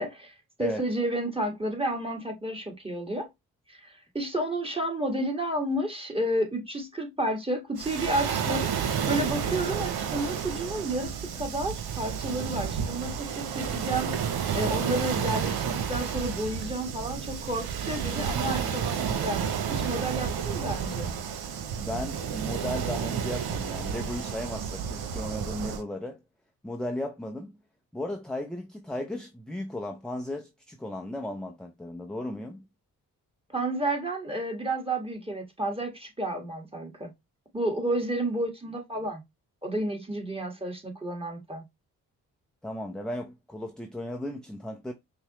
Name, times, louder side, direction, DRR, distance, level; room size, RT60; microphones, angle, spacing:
voice 1, 0.0-3.3 3.7-19.4 19.7-21.1 33.5-37.1 37.5-39.2 39.6-41.6, right 1 dB, 15° right, 1.6 m, -31 dB
Waves surf, 7.8-25.8, right 7 dB, 75° right, 0.7 m, -31 dB
voice 2, 21.7-26.2 26.6-27.5 27.9-32.7 42.6-44.9, left 1 dB, ahead, 0.6 m, -35 dB
5.5 x 2.1 x 2.9 m
supercardioid pair, 45°, 38 cm